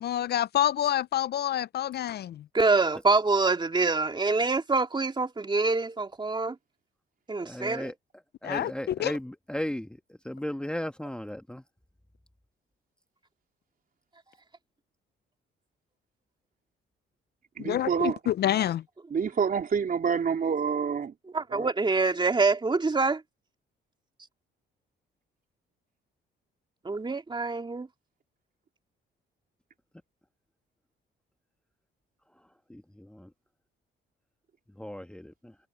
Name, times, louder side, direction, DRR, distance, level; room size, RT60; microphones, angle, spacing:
voice 1, 0.0-2.4 8.4-9.1 17.6-18.8, left 11 dB, 55° left, 0.4 m, -27 dB
voice 2, 2.5-6.6 7.3-7.9 21.3-23.2 26.8-27.9, right 3 dB, 25° right, 2.9 m, -25 dB
voice 3, 7.4-7.9 8.4-11.6 32.7-33.3 34.8-35.5, left 1 dB, 5° left, 1.3 m, -36 dB
voice 4, 17.6-18.2 19.1-21.1 21.5-21.7, right 6 dB, 45° right, 3.6 m, -27 dB
cardioid pair, 90°, 20 cm